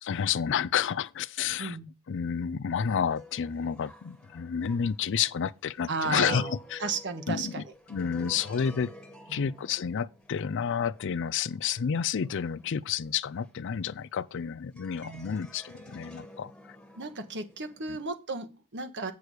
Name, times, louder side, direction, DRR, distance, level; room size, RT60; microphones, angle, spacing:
voice 1, 0.0-1.8 2.1-6.4 6.7-6.9 7.3-7.6 7.9-8.9 9.3-16.8 17.9-18.0, left 7 dB, 55° left, 0.4 m, -30 dB
sound 1, 2.8-14.4 14.8-18.1, equal, 5° left, 1.7 m, -50 dB
voice 2, 5.9-7.6 9.3-9.6 15.0-15.2 17.0-19.1, right 4 dB, 55° right, 1.3 m, -34 dB
8.4 x 6.1 x 4.9 m
head